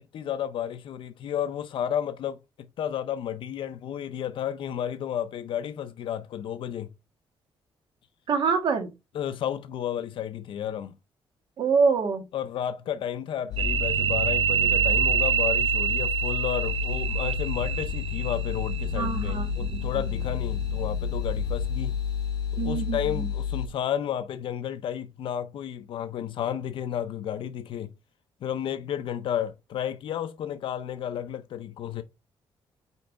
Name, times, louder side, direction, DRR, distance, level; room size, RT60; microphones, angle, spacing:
voice 1, 0.0-2.4 2.8-6.9 9.1-11.0 12.3-21.9 22.6-27.9 28.4-32.0, left 9 dB, 65° left, 0.6 m, -32 dB
voice 2, 8.3-8.9 11.6-12.2 18.9-20.0 22.6-23.3, right 5 dB, 55° right, 1.6 m, -26 dB
sound 1, 13.5-23.7, left 8 dB, 45° left, 3.2 m, -31 dB
sound 2, 13.6-22.2, right 8 dB, 80° right, 1.0 m, -28 dB
5.5 x 4.5 x 5.1 m
cardioid pair, 160°, 9 cm